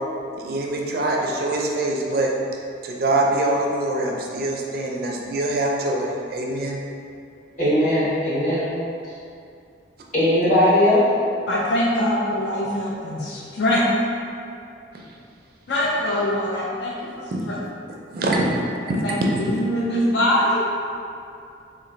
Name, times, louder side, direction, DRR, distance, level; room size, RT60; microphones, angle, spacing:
voice 1, 0.4-2.3 2.8-6.8 14.9-15.0 17.3-17.4 18.1-18.4 18.9-19.0, right 2 dB, 50° right, -1 dB, 0.4 m, -24 dB
voice 2, 7.6-8.6 10.1-11.0, left 1 dB, 45° left, -11 dB, 1.3 m, -18 dB
voice 3, 11.5-13.8 15.7-17.6 19.0-20.6, left 1 dB, 65° left, -4 dB, 0.4 m, -23 dB
2.9 x 2.4 x 3.8 m, 2.5 s
head